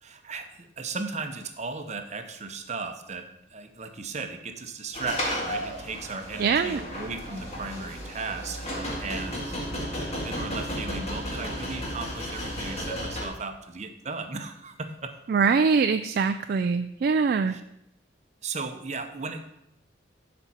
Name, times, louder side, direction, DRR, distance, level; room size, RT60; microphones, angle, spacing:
voice 1, 0.0-9.6 10.2-15.1 17.5-17.6 18.4-19.4, right 4 dB, 35° right, 7 dB, 0.8 m, -36 dB
sound 1, 4.9-13.3, equal, 35° left, 2.0 m, -33 dB
voice 2, 6.4-6.8 15.3-17.6, right 5 dB, 50° right, 8 dB, 0.3 m, -23 dB
12.0 x 5.2 x 4.3 m, 0.82 s
head